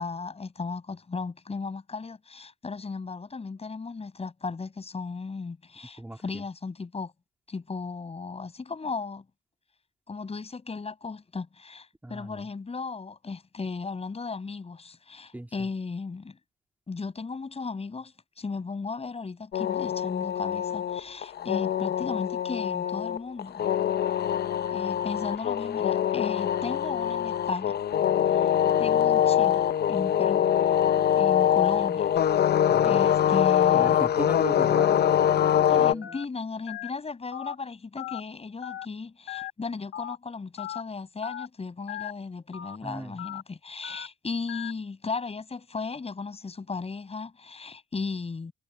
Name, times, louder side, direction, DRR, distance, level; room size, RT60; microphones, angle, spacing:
voice 1, 0.0-7.1 7.5-9.2 10.1-16.4 16.9-23.7 24.7-27.8 28.4-28.5 28.8-30.5 31.2-32.2 32.8-34.0 35.7-48.5, left 4 dB, 30° left, 6.5 m, -36 dB
voice 2, 6.0-6.4 12.0-12.4 15.3-15.5 32.7-33.0 33.7-36.2 42.8-43.2, right 1 dB, 10° right, 2.6 m, -38 dB
sound 1, 19.5-35.9, left 10 dB, 55° left, 0.7 m, -24 dB
Telephone, 34.7-34.9 35.4-35.6 36.0-36.2 36.7-36.9 37.3-37.6 38.0-38.2 38.6-38.9 39.3-39.5 39.9-40.2 40.6-40.8 41.2-41.5 41.9-42.1 42.5-42.8 43.2-43.4 43.8-44.1 44.5-44.7, left 12 dB, 80° left, 2.1 m, -37 dB
cardioid pair, 90°, 20 cm